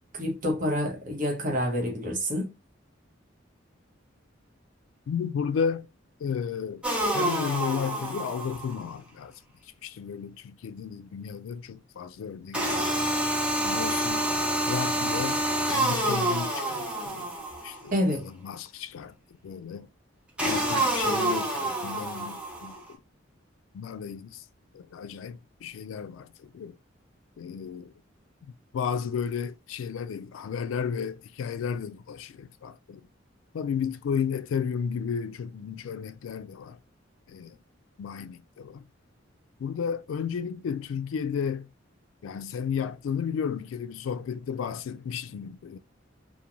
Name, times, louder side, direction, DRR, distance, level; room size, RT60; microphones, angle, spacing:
voice 1, 0.1-2.5 17.9-18.3, equal, 45° right, 0.9 m, -28 dB
voice 2, 5.1-5.9 6.2-6.8 7.1-9.3 9.8-12.9 13.6-14.3 14.7-15.4 15.7-17.3 17.6-19.1 19.4-19.9 20.4-22.8 23.7-24.4 24.7-26.8 27.4-27.9 28.7-33.0 33.5-36.8 37.3-37.6 38.0-38.8 39.6-41.7 42.2-45.8, left 7 dB, 80° left, 0.3 m, -33 dB
sound 1, 6.8-8.8 12.5-17.8 20.4-22.8, right 1 dB, 5° right, 0.6 m, -27 dB
3.0 x 2.1 x 2.4 m
head